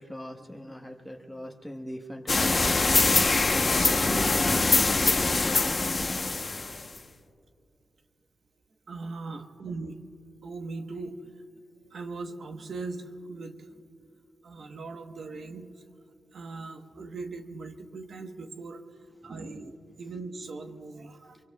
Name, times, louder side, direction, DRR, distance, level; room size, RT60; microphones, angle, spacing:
voice 1, 0.0-6.3 19.2-19.5, equal, ahead, 1 dB, 1.2 m, -40 dB
sound 1, 2.3-7.0, left 3 dB, 35° left, 0.9 m, -23 dB
voice 2, 8.9-10.0 10.4-11.3 11.8-13.9 14.4-15.7 16.3-18.8 19.2-21.4, right 3 dB, 65° right, 5 dB, 1.1 m, -39 dB
25.0 x 23.5 x 2.3 m, 2.5 s
cardioid pair, 85°, 0 cm